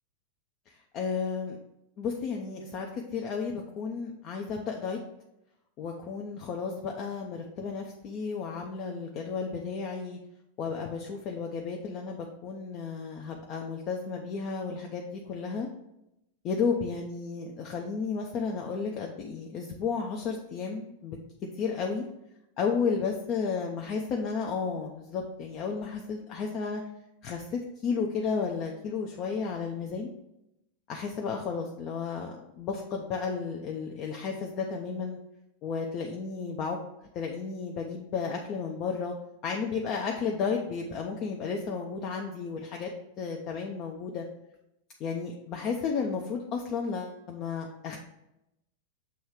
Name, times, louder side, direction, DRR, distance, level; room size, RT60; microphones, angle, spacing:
voice 1, 0.7-1.6 2.0-5.0 5.8-10.2 10.6-15.7 16.4-21.2 21.5-22.0 22.6-26.8 27.2-30.1 30.9-35.2 35.6-36.8 37.1-39.1 39.4-42.9 43.2-44.2 45.0-48.0, left 5 dB, 35° left, 1 dB, 0.6 m, -33 dB
6.9 x 3.1 x 4.7 m, 0.86 s
figure-of-eight pair, 90°, 0 cm